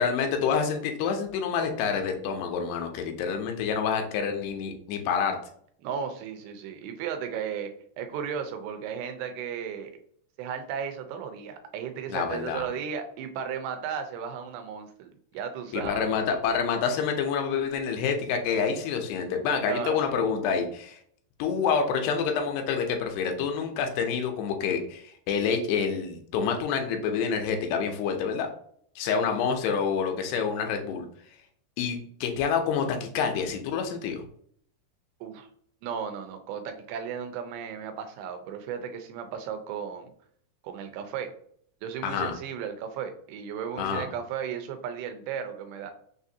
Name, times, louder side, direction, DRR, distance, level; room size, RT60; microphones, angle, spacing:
voice 1, 0.0-5.4 12.1-12.6 15.7-21.0 21.4-28.5 29.0-31.1 31.8-34.2 42.0-42.3 43.8-44.0, left 6 dB, 80° left, 4 dB, 2.6 m, -27 dB
voice 2, 5.8-7.7 8.0-9.9 10.4-16.1 19.7-20.2 35.2-35.5 35.8-40.1 40.6-41.3 41.8-45.9, right 7 dB, 85° right, 7 dB, 2.8 m, -35 dB
6.4 x 2.5 x 2.7 m, 0.63 s
omnidirectional pair, 4.8 m